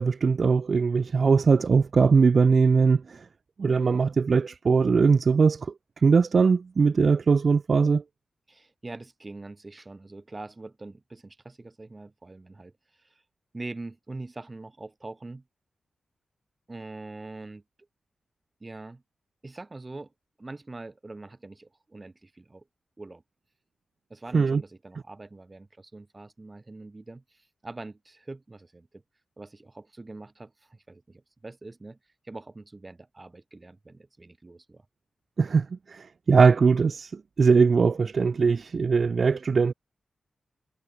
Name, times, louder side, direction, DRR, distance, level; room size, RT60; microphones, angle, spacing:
voice 1, 0.0-3.2 3.6-5.7 6.0-8.0 24.3-24.6 35.4-39.7, right 5 dB, 55° right, 1.1 m, -21 dB
voice 2, 8.5-12.7 13.0-13.2 13.5-15.4 16.7-17.6 18.6-19.0 19.4-20.1 20.4-22.6 23.0-23.2 24.1-29.0 29.4-32.0 32.2-34.9, right 2 dB, 30° right, 7.2 m, -43 dB
cardioid pair, 65°, 0 cm